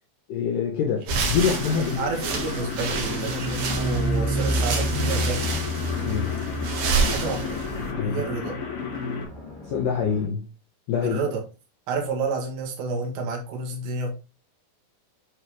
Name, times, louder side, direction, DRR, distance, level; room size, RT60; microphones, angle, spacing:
voice 1, 0.3-2.0 6.0-6.4 8.0-8.2 9.6-10.5 10.9-11.3, left 6 dB, 75° left, 2.0 m, -25 dB
sound 1, 1.0-7.9, right 4 dB, 60° right, 2.3 m, -29 dB
sound 2, 1.3-9.2, left 5 dB, 55° left, 3.0 m, -33 dB
voice 2, 1.8-5.4 7.0-7.6 8.1-8.5 11.0-11.4 11.9-14.1, right 4 dB, 85° right, 3.8 m, -30 dB
sound 3, 3.0-10.3, equal, 15° left, 1.6 m, -30 dB
10.0 x 3.7 x 3.1 m
omnidirectional pair, 4.9 m